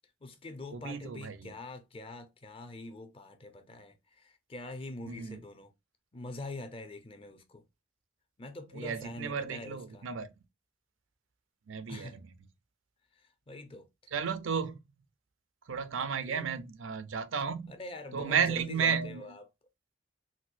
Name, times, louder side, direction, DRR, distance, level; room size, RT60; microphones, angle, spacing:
voice 1, 0.2-5.7 6.1-7.6 8.4-10.1 11.9-12.2 13.2-14.1 16.3-16.6 17.7-19.4, left 2 dB, 30° left, 0.5 m, -44 dB
voice 2, 0.7-1.5 5.1-5.4 8.7-10.3 11.7-12.2 14.1-14.8 15.7-17.7 18.1-19.3, right 6 dB, 80° right, 0.5 m, -33 dB
4.1 x 2.1 x 2.4 m
head